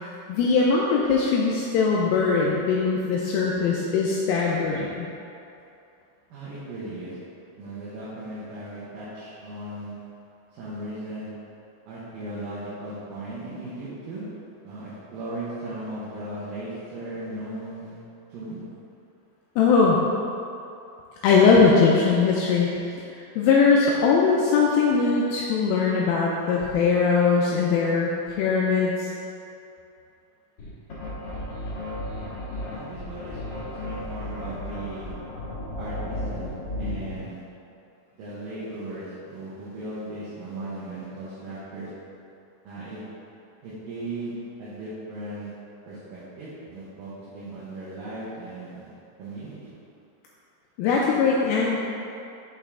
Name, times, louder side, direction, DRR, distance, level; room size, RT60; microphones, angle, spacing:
voice 1, 0.3-5.1 19.6-20.0 21.2-22.7 23.4-29.1 50.8-51.8, left 5 dB, 80° left, -3 dB, 2.3 m, -21 dB
voice 2, 6.3-7.2 7.6-9.9 10.5-11.3 11.9-14.2 14.6-18.0 18.3-18.6 32.7-35.1 35.8-36.5 36.8-37.4 38.2-41.9 42.6-43.1 43.6-45.5 45.9-49.7, right 2 dB, 70° right, -10 dB, 2.6 m, -37 dB
sound 1, 30.6-37.2, left 1 dB, 50° left, 2.0 m, -34 dB
6.7 x 5.3 x 3.6 m, 2.7 s
omnidirectional pair, 4.4 m